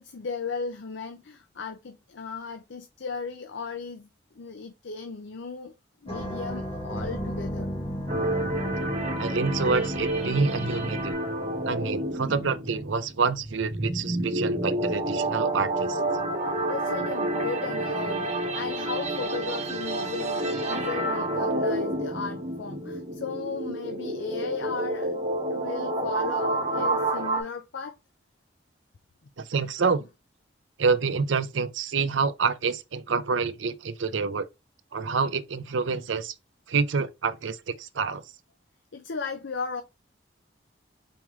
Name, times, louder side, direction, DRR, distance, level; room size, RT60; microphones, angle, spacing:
voice 1, 0.0-4.1 4.4-5.7 6.0-7.7 16.7-25.2 25.5-27.9 38.9-39.8, left 5 dB, 75° left, 0.5 m, -36 dB
sound 1, 6.1-11.1, equal, 30° left, 1.5 m, -33 dB
sound 2, 8.1-27.4, right 1 dB, 35° right, 1.3 m, -29 dB
voice 2, 9.2-11.2 11.7-16.0 29.4-30.0 30.8-34.5 34.9-36.3 36.7-38.2, right 5 dB, 85° right, 0.6 m, -27 dB
4.4 x 3.6 x 3.1 m
head